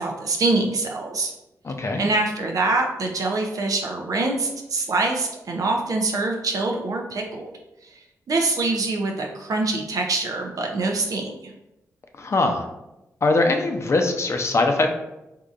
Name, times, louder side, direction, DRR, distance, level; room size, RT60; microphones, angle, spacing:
voice 1, 0.0-1.3 2.0-7.5 8.3-11.5, right 3 dB, 65° right, 1 dB, 0.6 m, -24 dB
voice 2, 1.6-2.0 12.2-12.7 13.2-14.9, left 2 dB, 45° left, 4 dB, 0.5 m, -21 dB
3.6 x 2.7 x 2.4 m, 0.92 s
supercardioid pair, 45°, 6 cm